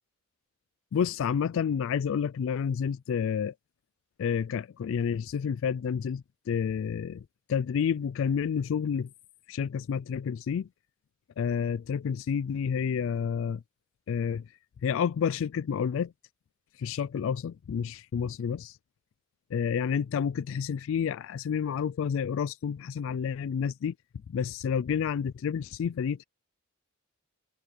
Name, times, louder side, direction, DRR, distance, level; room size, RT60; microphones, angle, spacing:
voice 1, 0.9-3.5 4.2-9.1 9.5-10.7 11.4-13.6 14.1-14.5 14.8-16.1 16.8-18.8 19.5-23.9 24.3-26.2, left 7 dB, 65° left, 0.3 m, -29 dB
head